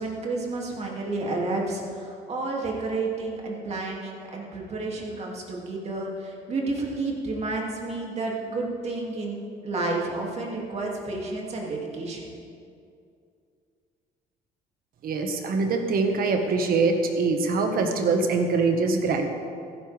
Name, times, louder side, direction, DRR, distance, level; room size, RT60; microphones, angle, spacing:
voice 1, 0.0-9.4 9.6-12.3, right 2 dB, 40° right, -2 dB, 2.6 m, -30 dB
voice 2, 15.0-19.3, right 4 dB, 60° right, 4 dB, 1.6 m, -23 dB
14.5 x 13.0 x 3.5 m, 2.4 s
cardioid pair, 110°, 17 cm